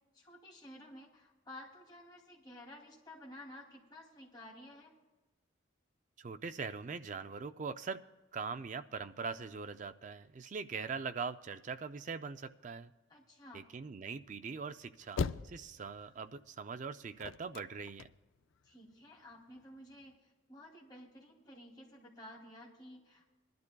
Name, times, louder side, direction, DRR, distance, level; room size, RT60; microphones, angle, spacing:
voice 1, 0.1-4.9 13.1-13.7 18.6-23.3, left 1 dB, 20° left, -3 dB, 2.5 m, -53 dB
voice 2, 6.2-8.0 8.3-12.9 13.5-18.1, right 5 dB, 40° right, 11 dB, 0.4 m, -42 dB
sound 1, 14.4-18.7 19.2-20.1, left 5 dB, 75° left, 0.4 m, -40 dB
22.0 x 12.0 x 2.3 m, 1.2 s
head